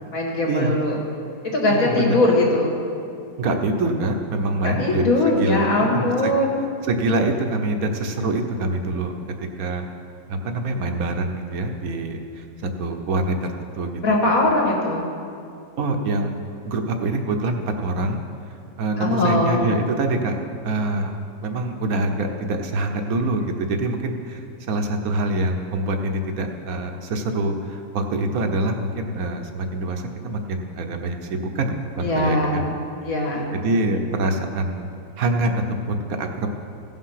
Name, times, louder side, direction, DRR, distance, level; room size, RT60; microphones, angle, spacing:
voice 1, 0.1-1.0 1.4-2.8 4.6-6.6 14.0-15.1 19.0-19.6 32.0-32.6 33.0-33.5, left 2 dB, 75° left, -2 dB, 2.3 m, -20 dB
voice 2, 1.7-2.2 3.4-6.3 6.9-9.1 9.6-9.8 10.3-14.2 15.8-16.3 16.6-18.2 18.8-20.4 20.6-32.6 33.5-34.9 35.2-36.5, right 2 dB, 80° right, 4 dB, 1.4 m, -25 dB
16.0 x 5.5 x 5.8 m, 2.5 s
omnidirectional pair, 1.5 m